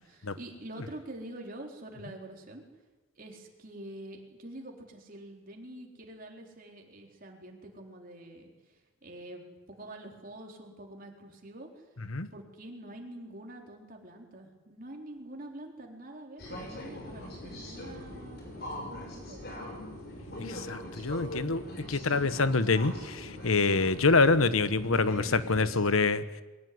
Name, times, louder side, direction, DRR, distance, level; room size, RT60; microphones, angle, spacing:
voice 1, 0.0-2.6 3.2-9.4 9.7-11.9 12.3-19.5, right 1 dB, 45° right, 1 dB, 3.9 m, -46 dB
sound 1, 16.4-25.8, left 1 dB, 50° left, 6.4 m, -42 dB
voice 2, 20.4-21.6 21.9-26.2, left 3 dB, 90° left, 13 dB, 1.2 m, -26 dB
22.5 x 17.5 x 9.5 m, 1.2 s
head